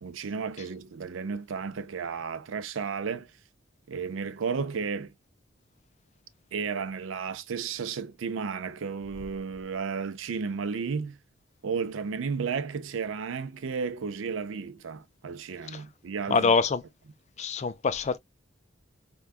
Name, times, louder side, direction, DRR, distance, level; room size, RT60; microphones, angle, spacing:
voice 1, 0.0-3.3 3.9-5.1 6.5-11.2 11.6-16.5, right 5 dB, 70° right, 0.5 m, -33 dB
voice 2, 16.3-16.8 17.4-18.2, left 4 dB, 35° left, 0.3 m, -24 dB
4.5 x 2.2 x 2.4 m
head